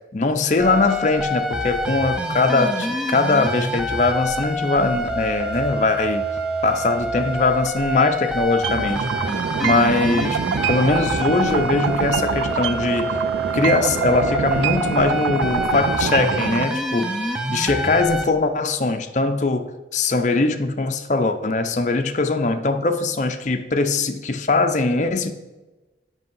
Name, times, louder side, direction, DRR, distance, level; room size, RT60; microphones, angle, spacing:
voice 1, 0.1-6.3 6.6-9.1 9.6-13.1 13.5-17.1 17.5-25.3, left 3 dB, 40° left, 0.6 m, -21 dB
sound 1, 0.6-18.2, equal, 5° right, 0.5 m, -26 dB
sound 2, 8.6-16.6, right 7 dB, 90° right, 0.3 m, -25 dB
8.1 x 5.2 x 5.5 m
head